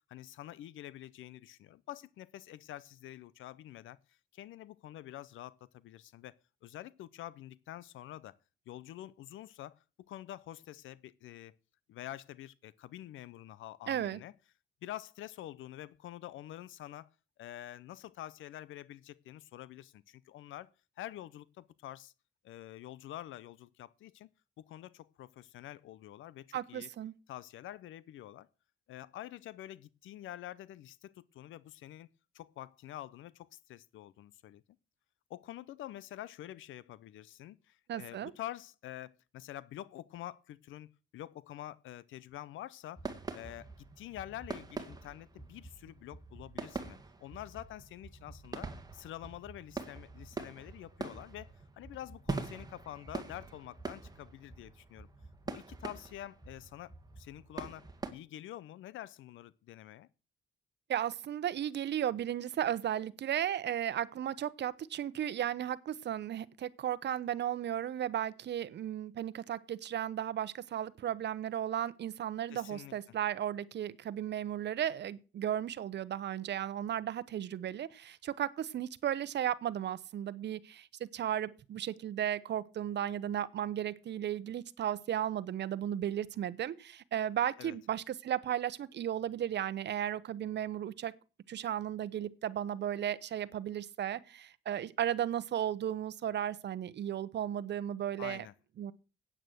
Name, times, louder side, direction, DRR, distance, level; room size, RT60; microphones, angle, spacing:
voice 1, 0.1-8.4 8.7-9.8 10.1-11.5 11.9-14.3 14.8-17.1 17.4-20.7 21.0-22.1 22.4-24.3 24.6-26.9 27.3-28.5 28.9-32.1 32.3-34.6 35.3-43.0 43.3-55.1 55.5-60.1 72.5-72.9 87.6-87.8 98.2-98.5, left 13 dB, 80° left, 0.7 m, -47 dB
voice 2, 13.9-14.2 26.5-27.1 37.9-38.3 60.9-91.1 91.5-98.5 98.8-98.9, right 10 dB, 60° right, 0.9 m, -35 dB
sound 1, 43.0-58.1, right 3 dB, 20° right, 2.0 m, -44 dB
8.9 x 8.8 x 7.9 m
cardioid pair, 90°, 20 cm